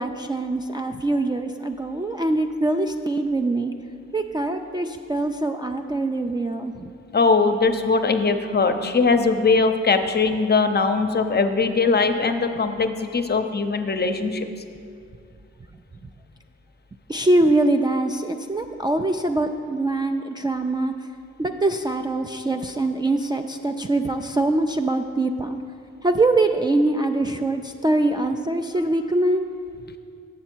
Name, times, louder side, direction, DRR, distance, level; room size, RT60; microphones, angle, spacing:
voice 1, 0.0-3.7 4.1-6.9 17.1-20.9 21.4-25.6 26.0-29.5, right 2 dB, 15° right, 3 dB, 0.3 m, -23 dB
voice 2, 7.1-14.5, left 4 dB, 35° left, 7 dB, 0.6 m, -20 dB
7.3 x 6.8 x 4.4 m, 2.4 s
cardioid pair, 60°, 29 cm